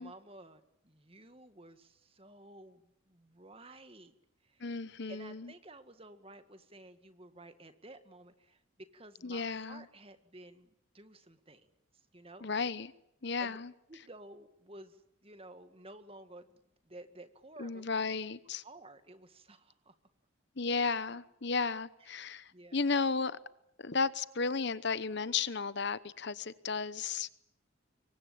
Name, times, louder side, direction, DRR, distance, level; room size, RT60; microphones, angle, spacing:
voice 1, 0.0-4.1 4.4-4.7 5.1-12.5 13.4-13.6 13.9-17.8 18.6-19.9 22.0-22.2 22.5-22.9, right 2 dB, 25° right, 2.0 m, -53 dB
voice 2, 4.6-5.5 9.2-9.8 12.4-12.9 13.2-13.7 17.6-18.6 20.6-23.4 23.8-27.3, left 4 dB, 55° left, 1.0 m, -34 dB
26.0 x 23.5 x 8.8 m
head